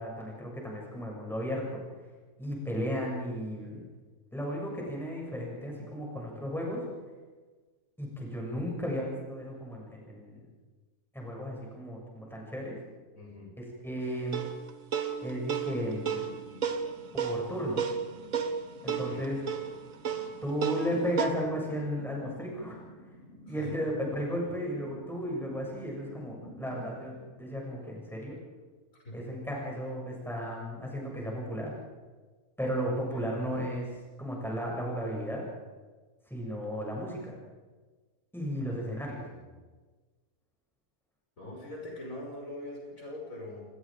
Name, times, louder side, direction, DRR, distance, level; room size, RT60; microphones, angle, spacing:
voice 1, 0.0-1.8 2.4-3.8 4.3-6.8 8.0-10.4 11.1-12.8 13.6-14.5 15.2-16.2 17.1-17.9 18.8-19.4 20.4-22.8 23.5-28.4 29.1-31.7 32.6-35.4 36.3-37.3 38.3-39.3, equal, ahead, -2 dB, 7.2 m, -34 dB
voice 2, 13.1-13.5 18.8-19.2 23.5-23.8 28.9-29.3 33.1-33.3 38.9-39.3 41.4-43.6, left 1 dB, 60° left, -2 dB, 6.4 m, -43 dB
sound 1, 14.3-21.3, right 7 dB, 60° right, 1.7 m, -33 dB
sound 2, 15.6-28.3, left 1 dB, 35° left, 6.4 m, -52 dB
28.5 x 20.0 x 5.2 m, 1.3 s
omnidirectional pair, 1.6 m